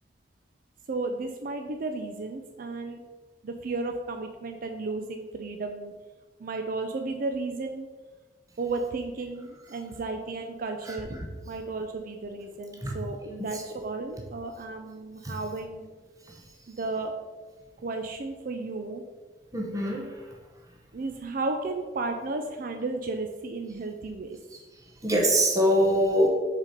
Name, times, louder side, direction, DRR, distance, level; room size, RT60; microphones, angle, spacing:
voice 1, 0.9-3.0 3.4-5.9 6.4-7.9 8.6-11.1 11.4-15.9 16.7-17.1 17.8-19.0 20.9-24.4, right 3 dB, 55° right, 5 dB, 0.5 m, -33 dB
voice 2, 19.5-20.2 25.0-26.3, equal, 20° right, 0 dB, 0.9 m, -24 dB
6.0 x 4.2 x 5.2 m, 1.3 s
head